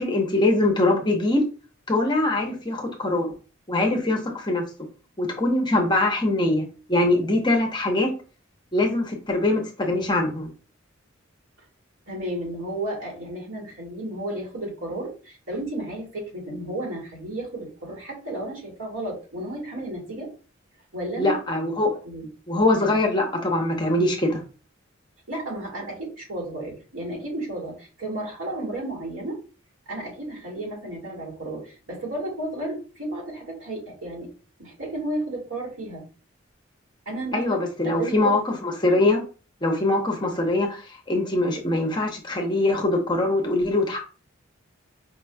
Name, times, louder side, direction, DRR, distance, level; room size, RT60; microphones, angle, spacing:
voice 1, 0.0-1.4 1.9-3.3 3.7-4.6 5.2-6.6 6.9-8.1 8.7-10.5 21.2-22.0 22.5-24.4 37.3-39.2 39.6-44.0, left 2 dB, 20° left, 2 dB, 0.8 m, -23 dB
voice 2, 12.1-20.3 20.9-21.5 22.0-22.3 25.3-29.4 29.9-34.3 34.6-36.0 37.1-37.4 37.8-38.3, right 1 dB, 90° right, -2 dB, 2.1 m, -33 dB
5.0 x 3.0 x 2.3 m, 0.35 s
head